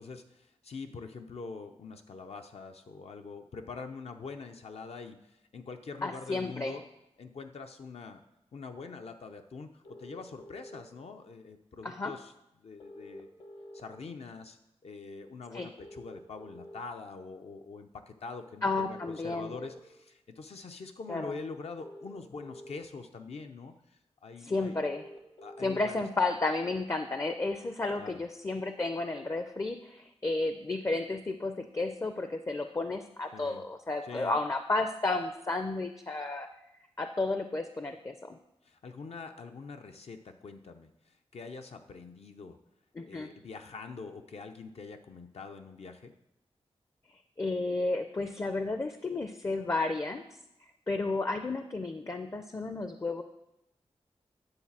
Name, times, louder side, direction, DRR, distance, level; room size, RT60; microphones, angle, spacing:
voice 1, 0.0-6.8 7.2-8.2 8.5-12.3 12.6-13.3 13.7-24.8 25.4-26.0 28.0-28.2 33.3-33.6 34.0-34.4 38.6-42.6 43.1-46.1, left 4 dB, 70° left, 5 dB, 0.6 m, -44 dB
voice 2, 6.0-6.7 11.8-12.1 15.5-15.7 18.6-19.5 21.1-21.3 24.4-25.1 25.6-36.5 37.0-38.4 43.0-43.3 47.4-50.2 50.9-53.2, left 2 dB, 25° left, 8 dB, 0.5 m, -32 dB
sound 1, 9.8-10.8 12.8-13.8 15.8-16.8 18.8-19.8 21.8-22.8 24.8-25.8, equal, 50° left, 0.9 m, -48 dB
9.9 x 4.0 x 7.3 m, 0.88 s
wide cardioid pair, 135°, 11 cm